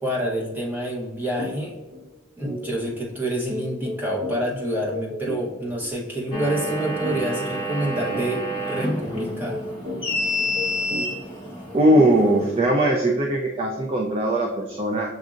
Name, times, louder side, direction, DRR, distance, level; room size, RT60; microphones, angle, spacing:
voice 1, 0.0-1.8 2.4-9.6, right 1 dB, 10° right, -4 dB, 1.0 m, -28 dB
sound 1, 1.4-1.6 1.9-2.1 2.4-12.7, left 1 dB, 65° right, 1.0 m, -35 dB
sound 2, 6.3-12.7, left 1 dB, 25° left, 1.1 m, -29 dB
voice 2, 11.7-15.1, right 1 dB, 30° right, 0 dB, 0.4 m, -20 dB
7.1 x 2.6 x 2.5 m, 1.1 s
head